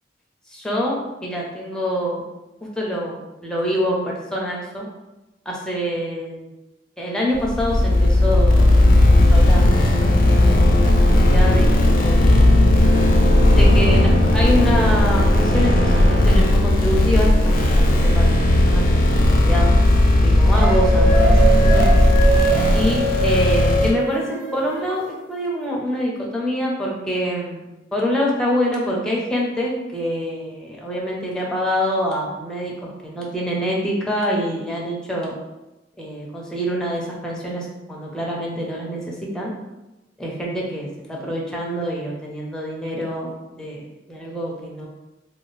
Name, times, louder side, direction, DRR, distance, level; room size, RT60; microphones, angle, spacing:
voice 1, 0.5-2.3 2.6-4.9 5.5-6.5 7.0-8.8 9.3-12.5 13.6-19.7 20.2-22.0 22.7-27.7 27.9-35.4 36.0-39.5 40.2-44.9, equal, 5° left, -3 dB, 0.6 m, -26 dB
sound 1, 7.3-23.9, left 1 dB, 50° left, 0.4 m, -15 dB
sound 2, 20.5-25.0, right 2 dB, 25° right, 1.2 m, -22 dB
2.7 x 2.4 x 3.1 m, 0.99 s
head